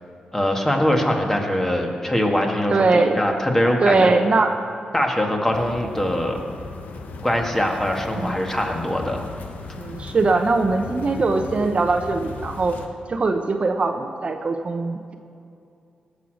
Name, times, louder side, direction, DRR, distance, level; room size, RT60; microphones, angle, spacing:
voice 1, 0.3-4.1 4.9-6.4 7.2-9.3, left 1 dB, 15° left, 1 dB, 1.8 m, -22 dB
voice 2, 2.7-3.2 3.8-4.5 8.2-8.3 9.7-12.8 13.1-15.1, right 3 dB, 45° right, 5 dB, 0.8 m, -21 dB
sound 1, 5.5-12.9, left 3 dB, 80° left, 1.1 m, -37 dB
18.0 x 6.6 x 6.4 m, 2.4 s
cardioid pair, 80°, 3 cm